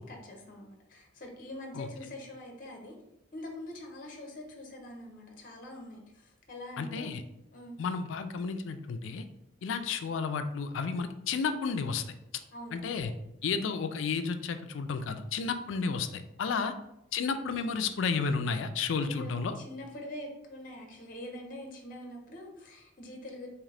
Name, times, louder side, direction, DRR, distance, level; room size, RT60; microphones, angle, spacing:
voice 1, 0.0-2.9 3.3-7.2 7.5-7.8 12.5-13.0 16.4-16.8 19.0-23.5, left 1 dB, 45° left, 2 dB, 0.7 m, -44 dB
voice 2, 6.8-7.2 7.8-9.2 9.6-12.0 12.7-13.1 13.4-16.7 17.1-19.5, left 5 dB, 75° left, 9 dB, 0.4 m, -32 dB
3.7 x 3.0 x 3.3 m, 0.85 s
head